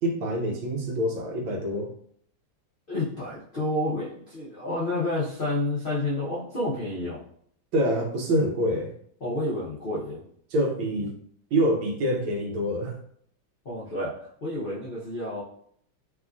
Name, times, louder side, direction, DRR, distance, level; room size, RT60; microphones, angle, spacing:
voice 1, 0.0-1.9 7.7-8.9 10.5-11.2 11.5-13.0, equal, 85° right, 2 dB, 1.5 m, -26 dB
voice 2, 2.9-7.2 9.2-10.2 13.6-15.4, left 1 dB, 85° left, -9 dB, 0.4 m, -30 dB
3.5 x 2.3 x 2.4 m, 0.64 s
omnidirectional pair, 2.1 m